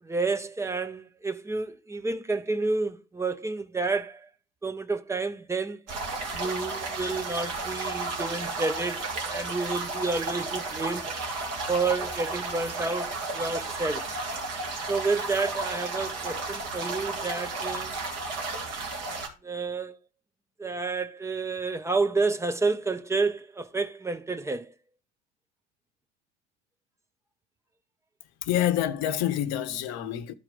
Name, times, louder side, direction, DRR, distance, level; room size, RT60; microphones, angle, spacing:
voice 1, 0.0-4.3 4.6-5.8 6.3-11.1 11.7-14.1 14.9-18.0 19.4-20.0 20.6-24.7, right 3 dB, 10° right, 0.5 m, -30 dB
sound 1, 5.9-19.3, right 3 dB, 45° right, 2.0 m, -33 dB
voice 2, 28.4-30.3, left 11 dB, 45° left, 0.8 m, -27 dB
12.5 x 4.4 x 3.8 m
figure-of-eight pair, 70°, 36 cm